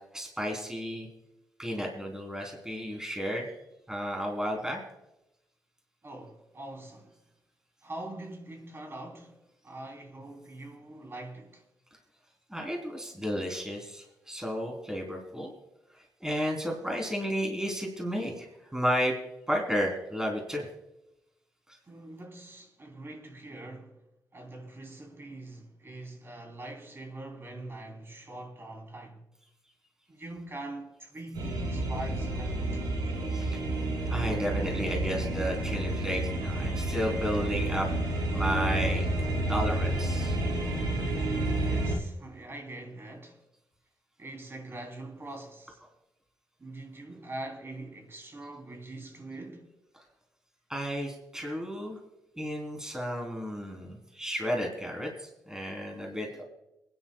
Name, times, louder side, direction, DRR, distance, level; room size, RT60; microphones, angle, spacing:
voice 1, 0.1-1.1 1.6-3.5 3.9-4.8 12.5-15.5 15.9-19.1 19.5-20.7 33.3-33.6 34.1-37.9 38.3-39.1 39.5-40.4 50.7-52.0 52.3-56.4, equal, 10° right, 3.5 m, -32 dB
voice 2, 6.0-7.1 7.8-11.6 21.9-24.0 24.3-29.2 30.1-33.0 41.6-43.4 44.2-45.8 46.6-49.7, right 2 dB, 35° right, 3.4 m, -43 dB
sound 1, 31.3-42.0, right 1 dB, 85° right, 3.0 m, -30 dB
28.0 x 10.5 x 2.3 m
cardioid pair, 60°, 7 cm